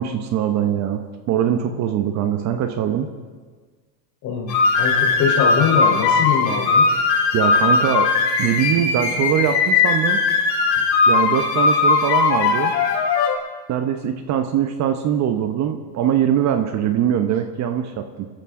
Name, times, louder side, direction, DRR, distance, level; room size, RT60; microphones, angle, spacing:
voice 1, 0.0-3.1 7.3-8.1 8.4-10.2 11.1-12.8 13.7-18.3, right 9 dB, 35° right, 7 dB, 1.0 m, -22 dB
voice 2, 4.2-6.8, left 6 dB, 45° left, 1 dB, 4.0 m, -23 dB
sound 1, 4.5-13.3, left 4 dB, 85° left, 3.8 m, -18 dB
26.5 x 13.5 x 3.8 m, 1.5 s
supercardioid pair, 135°, 49 cm